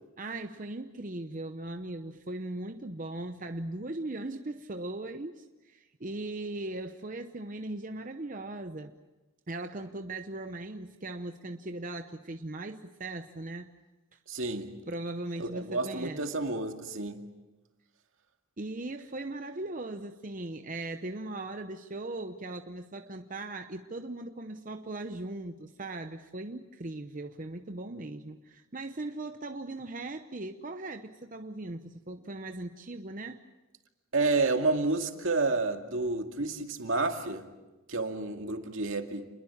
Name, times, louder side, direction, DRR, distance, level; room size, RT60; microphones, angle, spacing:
voice 1, 0.2-8.9 9.5-13.7 14.1-14.2 14.9-16.3 18.6-33.4, right 2 dB, 40° right, 6 dB, 0.8 m, -39 dB
voice 2, 14.3-14.7 15.4-17.2 34.1-37.5 37.9-39.3, right 3 dB, 70° right, 4 dB, 2.3 m, -30 dB
28.5 x 21.5 x 7.3 m, 1.1 s
head